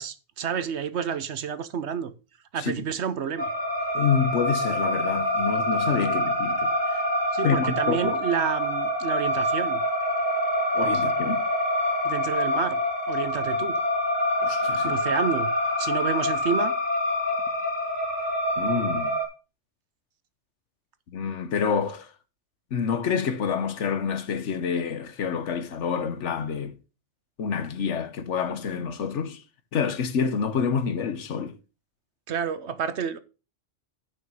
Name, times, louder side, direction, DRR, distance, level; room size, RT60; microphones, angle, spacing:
voice 1, 0.0-2.1 2.5-3.5 7.3-9.8 12.0-12.8 13.1-13.8 14.8-15.5 15.8-16.7 32.3-33.2, right 7 dB, 65° right, 1.1 m, -29 dB
sound 1, 3.4-19.3, left 1 dB, 45° right, 3.0 m, -26 dB
voice 2, 3.9-7.0 7.4-8.2 10.7-11.4 14.4-14.9 18.6-19.2 21.1-22.1 22.7-26.7 27.4-29.4 29.7-31.6, left 6 dB, 75° left, 1.2 m, -27 dB
9.4 x 5.9 x 5.3 m
omnidirectional pair, 1.2 m